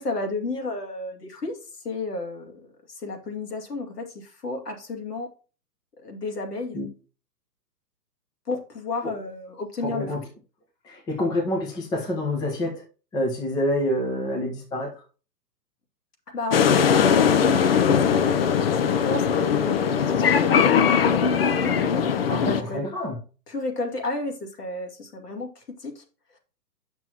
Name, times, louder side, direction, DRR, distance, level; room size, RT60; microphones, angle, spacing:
voice 1, 0.0-1.6 1.8-5.3 6.0-6.8 8.5-10.2 16.3-18.2 18.8-22.8 23.5-26.0, left 3 dB, 65° left, 2 dB, 2.5 m, -32 dB
voice 2, 9.8-10.2 10.8-12.8 13.1-15.0 22.3-23.2, left 1 dB, 10° left, 1 dB, 0.9 m, -27 dB
sound 1, 16.5-22.6, left 7 dB, 35° left, 0.6 m, -20 dB
8.8 x 6.1 x 2.9 m, 0.35 s
figure-of-eight pair, 120°, 50 cm